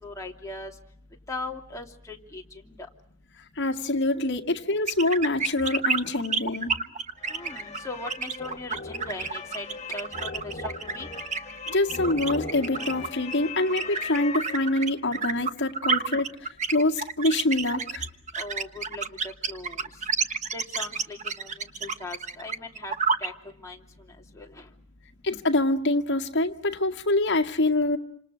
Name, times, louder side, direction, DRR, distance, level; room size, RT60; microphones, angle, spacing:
voice 1, 0.0-0.7 1.3-2.7 7.3-11.1 18.4-19.8 20.5-22.9 23.2-23.3 23.6-23.8 24.3-24.7, left 2 dB, 15° left, 0 dB, 2.9 m, -39 dB
voice 2, 3.6-6.7 11.7-18.0 25.2-28.0, left 2 dB, 55° left, 3 dB, 2.0 m, -25 dB
sound 1, 4.9-23.3, right 5 dB, 35° right, 1.2 m, -29 dB
sound 2, 7.2-15.0, left 4 dB, 30° left, 1.8 m, -39 dB
28.5 x 27.0 x 6.4 m, 0.66 s
head